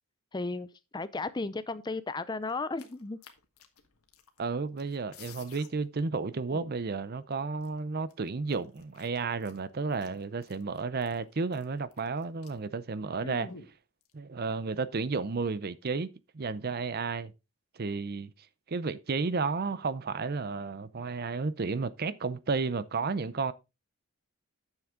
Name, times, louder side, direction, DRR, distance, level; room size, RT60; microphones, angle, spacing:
voice 1, 0.3-3.2 13.2-13.6, left 3 dB, 20° left, 0.4 m, -35 dB
sound 1, 2.5-4.5 4.8-5.7 6.0-6.1 6.5-7.0 7.6-7.7 8.1-12.7 13.0-13.1 13.5-14.1, left 4 dB, 80° left, 1.5 m, -53 dB
voice 2, 4.4-13.5 14.1-16.1 16.3-17.3 17.8-18.3 18.7-23.5, right 4 dB, 45° right, 0.5 m, -32 dB
9.6 x 7.2 x 3.7 m
head